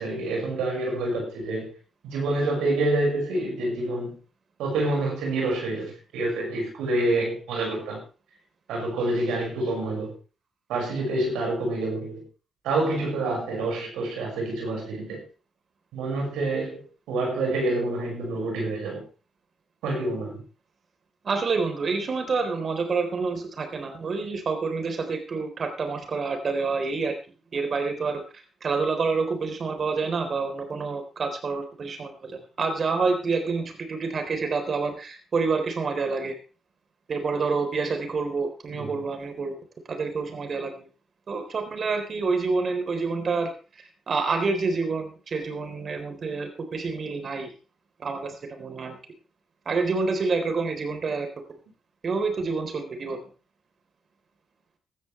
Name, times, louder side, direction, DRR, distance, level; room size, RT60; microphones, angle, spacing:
voice 1, 0.0-1.7 2.0-4.2 4.6-8.0 8.7-10.1 10.7-12.3 12.6-15.2 15.9-19.0 19.8-20.4 38.7-39.0, right 2 dB, 75° right, 0 dB, 5.8 m, -27 dB
voice 2, 21.2-27.1 27.5-28.2 28.6-36.3 37.1-39.6 39.9-40.9 41.3-43.5 44.1-47.5 48.0-49.0 49.7-51.3 52.0-53.3, right 4 dB, 50° right, 6 dB, 3.8 m, -28 dB
17.0 x 13.0 x 3.3 m, 0.34 s
hypercardioid pair, 40°, 0 cm